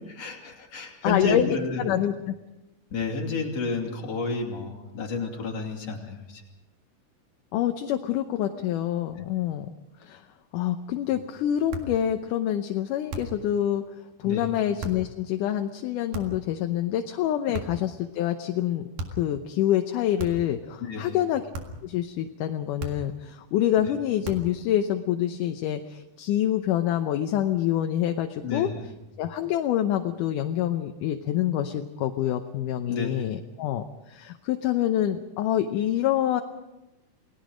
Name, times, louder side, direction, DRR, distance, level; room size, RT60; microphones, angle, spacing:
voice 1, 0.1-1.8 2.9-6.4 9.2-9.3 14.2-14.5 20.8-21.2 28.4-28.8 32.9-33.3, left 4 dB, 50° left, 1 dB, 3.9 m, -31 dB
voice 2, 1.0-2.3 7.5-9.7 10.0-10.3 10.5-13.8 14.2-18.8 19.2-21.4 21.8-28.7 29.2-36.4, left 11 dB, 80° left, 6 dB, 2.4 m, -26 dB
sound 1, 11.7-12.0 13.1-13.5 14.8-15.1 16.1-16.5 17.5-17.9 19.0-19.3 20.2-20.6 21.5-21.9 22.8-23.2 24.2-24.6, right 2 dB, 85° right, 3.6 m, -36 dB
29.0 x 19.0 x 5.1 m, 0.96 s
omnidirectional pair, 3.7 m